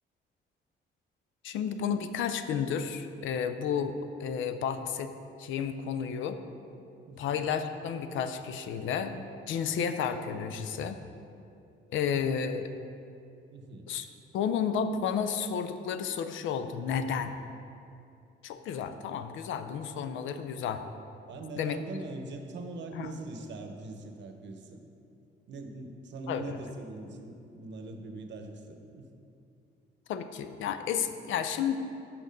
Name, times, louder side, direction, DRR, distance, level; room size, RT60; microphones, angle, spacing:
voice 1, 1.4-3.9 4.2-5.1 5.4-6.4 7.2-11.0 11.9-12.7 13.9-14.1 14.3-17.3 18.4-20.8 21.6-21.8 22.9-23.1 26.3-26.6 30.1-31.8, left 7 dB, 80° left, 9 dB, 0.5 m, -32 dB
voice 2, 7.1-7.4 13.5-13.9 21.3-24.8 25.5-29.1, right 2 dB, 65° right, 5 dB, 0.8 m, -42 dB
6.4 x 5.8 x 5.2 m, 2.6 s
cardioid pair, 90°, 20 cm